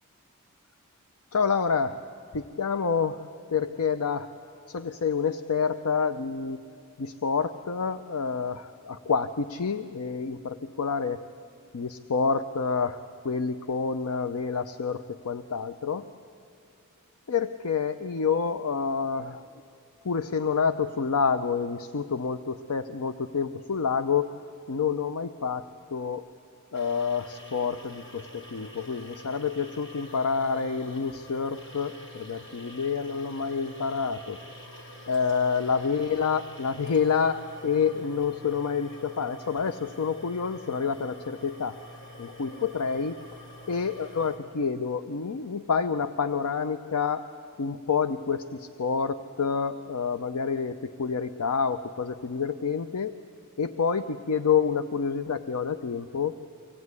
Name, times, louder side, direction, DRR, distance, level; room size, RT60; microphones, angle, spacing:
voice 1, 1.3-2.0 2.3-4.3 4.7-6.6 7.0-11.2 11.7-16.1 17.3-19.4 20.0-24.4 24.7-25.6 25.9-26.2 26.7-34.4 35.1-41.8 42.2-43.2 43.7-47.2 47.6-53.2 53.6-56.3, left 5 dB, 90° left, 11 dB, 0.6 m, -28 dB
sound 1, 26.7-44.4, equal, 55° left, 3.9 m, -46 dB
24.5 x 17.5 x 9.6 m, 2.4 s
head